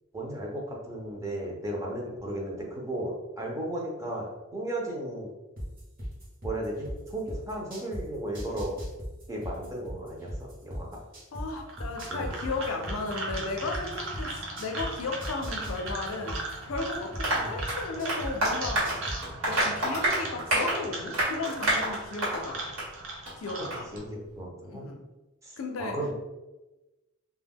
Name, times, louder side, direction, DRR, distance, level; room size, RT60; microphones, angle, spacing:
voice 1, 0.1-5.3 6.4-8.8 9.3-11.0 12.1-12.3 17.4-17.5 23.6-24.9 25.4-26.1, right 1 dB, 15° right, -2 dB, 0.5 m, -35 dB
sound 1, 5.6-8.0 8.3-11.4 11.8-14.9 15.2-18.3 18.6-19.2, equal, 45° right, 0.9 m, -36 dB
voice 2, 11.3-19.0 19.4-22.7 23.4-23.9 24.6-25.0 25.6-26.0, left 3 dB, 90° left, 3 dB, 0.5 m, -35 dB
sound 2, 11.6-24.0, right 2 dB, 70° right, 0.5 m, -39 dB
Applause, 17.2-22.5 22.8-22.9 23.3-23.4 23.7-23.8, right 1 dB, 90° right, 1.2 m, -28 dB
2.3 x 2.1 x 3.5 m, 1.1 s
head